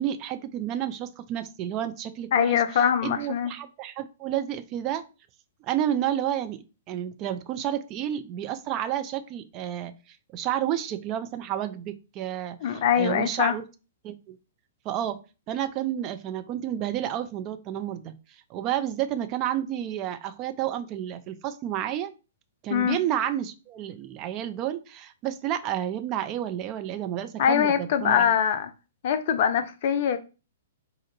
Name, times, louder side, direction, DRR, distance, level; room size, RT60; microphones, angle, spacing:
voice 1, 0.0-5.0 5.6-9.9 10.3-13.6 14.0-14.4 14.8-15.2 15.5-18.1 18.5-22.1 22.6-28.3, right 11 dB, 30° right, 0.4 m, -30 dB
voice 2, 2.3-3.5 12.6-13.5 22.7-23.0 27.4-28.7 29.0-30.2, left 8 dB, 45° left, 0.5 m, -23 dB
4.2 x 2.5 x 3.9 m
figure-of-eight pair, 110°, 0 cm